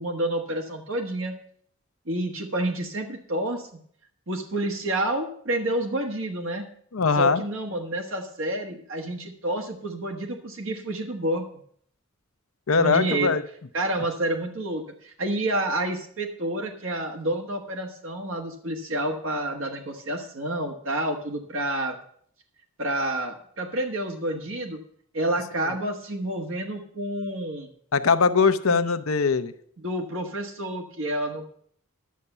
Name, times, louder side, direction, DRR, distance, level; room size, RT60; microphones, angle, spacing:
voice 1, 0.0-1.4 2.1-3.7 4.3-6.6 7.2-11.5 12.8-13.4 13.7-22.0 22.8-24.8 25.1-27.7 28.7-28.9 29.8-31.5, right 1 dB, 65° right, 3 dB, 1.4 m, -29 dB
voice 2, 6.9-7.4 12.7-13.4 27.9-29.5, left 5 dB, 70° left, 11 dB, 0.7 m, -21 dB
11.0 x 7.2 x 6.7 m, 0.63 s
head